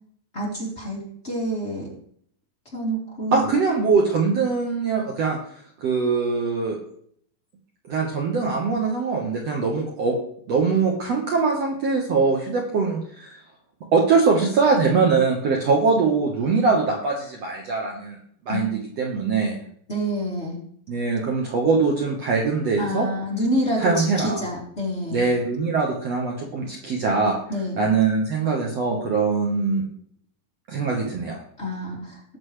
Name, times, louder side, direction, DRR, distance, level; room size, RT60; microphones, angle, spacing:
voice 1, 0.3-1.0 1.2-1.9 2.7-3.5 18.5-18.6 19.9-20.6 22.8-25.2 27.5-27.8 31.6-32.4, equal, 20° left, -5 dB, 2.8 m, -27 dB
voice 2, 3.3-5.4 5.8-6.8 7.9-10.2 10.5-13.4 13.9-18.2 18.5-19.6 20.9-23.1 23.8-24.4 25.1-27.4 27.8-29.8 30.7-31.4, right 4 dB, 55° right, -1 dB, 2.1 m, -22 dB
19.0 x 7.1 x 3.3 m, 0.63 s
omnidirectional pair, 4.1 m